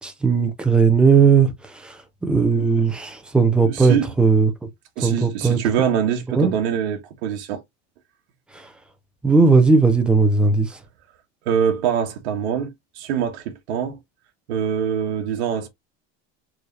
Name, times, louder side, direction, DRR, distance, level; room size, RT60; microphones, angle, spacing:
voice 1, 0.0-4.5 5.0-5.6 6.3-6.5 8.5-8.7 9.2-10.8, right 4 dB, 5° right, 0.4 m, -17 dB
voice 2, 3.6-4.0 5.0-7.6 11.4-14.0 14.5-15.7, right 8 dB, 85° right, 1.3 m, -24 dB
4.7 x 3.2 x 2.7 m
cardioid pair, 175°, 32 cm